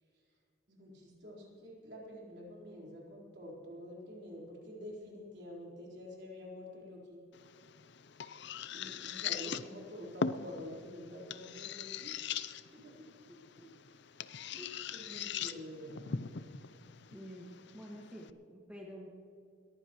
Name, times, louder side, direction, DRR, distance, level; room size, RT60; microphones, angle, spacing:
voice 1, 0.7-7.2 8.7-12.2 14.5-14.6 14.9-16.2, left 1 dB, 55° right, -3 dB, 4.1 m, -47 dB
sound 1, 7.3-18.3, left 6 dB, 55° left, 0.5 m, -41 dB
voice 2, 12.7-13.0 13.3-13.7 14.6-14.7 16.6-16.7 17.1-19.1, equal, 5° right, -3 dB, 1.7 m, -50 dB
21.0 x 15.0 x 3.1 m, 2.5 s
head